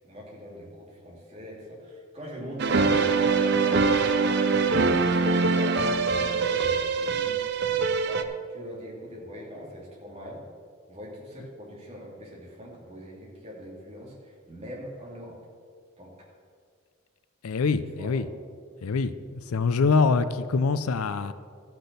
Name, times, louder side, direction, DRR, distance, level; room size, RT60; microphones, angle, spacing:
voice 1, 0.1-5.0 5.4-10.4 10.9-15.4 16.0-16.1 18.0-18.1, equal, 30° right, -4 dB, 2.6 m, -42 dB
sound 1, 2.6-8.2, right 4 dB, 50° right, 0.6 m, -23 dB
voice 2, 17.4-18.3 18.8-21.3, left 4 dB, 85° left, 13 dB, 0.5 m, -24 dB
14.0 x 6.0 x 6.7 m, 2.1 s
head